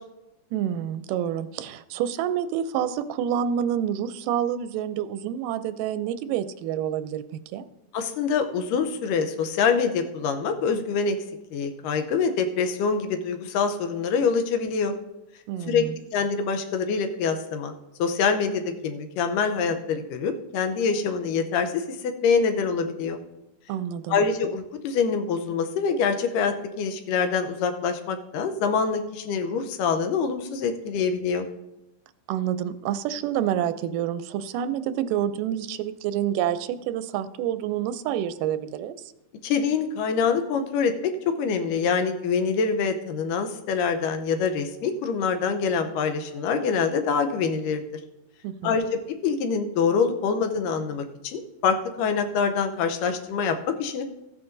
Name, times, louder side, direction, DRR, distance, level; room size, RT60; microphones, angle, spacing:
voice 1, 0.5-7.2 7.5-7.7 15.5-16.0 23.7-24.2 32.3-39.0 48.4-48.8, right 10 dB, 90° right, 13 dB, 2.2 m, -28 dB
voice 2, 7.9-11.2 11.5-15.0 15.7-15.8 16.1-17.7 18.0-23.2 24.1-31.5 39.4-41.1 41.4-47.8 48.6-54.0, left 5 dB, 85° left, 7 dB, 2.4 m, -25 dB
14.5 x 9.5 x 2.6 m, 0.92 s
omnidirectional pair, 3.7 m